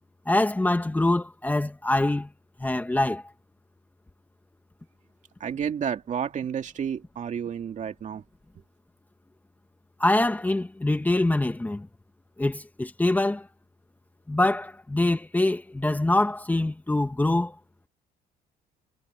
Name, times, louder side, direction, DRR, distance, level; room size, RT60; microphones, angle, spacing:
voice 1, 0.3-2.3 2.6-3.2 10.0-11.9 12.4-13.5 14.3-17.5, left 2 dB, 10° left, 1.5 m, -24 dB
voice 2, 5.4-8.2, right 8 dB, 45° right, 2.4 m, -31 dB
cardioid pair, 110°, 17 cm